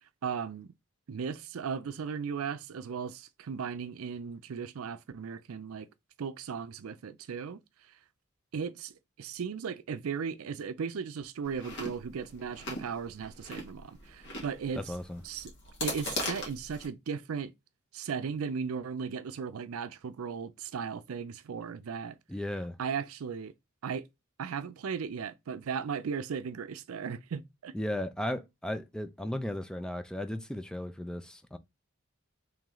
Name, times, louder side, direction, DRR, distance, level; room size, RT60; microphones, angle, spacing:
voice 1, 0.2-0.7 1.1-5.9 6.2-7.6 8.5-14.8 15.2-15.5 15.8-17.5 17.9-22.2 22.8-23.5 23.8-24.1 24.4-27.7, right 6 dB, 85° right, 0.4 m, -36 dB
Chewing mastication, 11.4-16.9, left 2 dB, 60° left, 1.5 m, -40 dB
voice 2, 14.7-15.2 22.3-22.8 27.7-31.6, left 1 dB, 5° left, 0.3 m, -35 dB
3.8 x 3.1 x 3.0 m
head